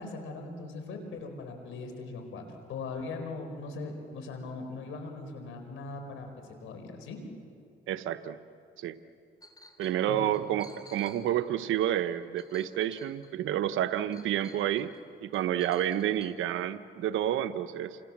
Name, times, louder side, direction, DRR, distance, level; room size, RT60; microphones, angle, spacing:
voice 1, 0.0-7.2 10.1-10.4, left 3 dB, 85° left, 5 dB, 4.9 m, -40 dB
voice 2, 7.9-8.4 8.8-9.0 9.8-14.9 15.2-18.0, right 11 dB, 85° right, 12 dB, 1.0 m, -29 dB
Chink clink, 9.4-10.0 10.3-13.5 14.1-15.0 15.3-16.3, left 2 dB, 20° left, 3.4 m, -55 dB
29.5 x 27.0 x 7.4 m, 2.5 s
cardioid pair, 90°, 20 cm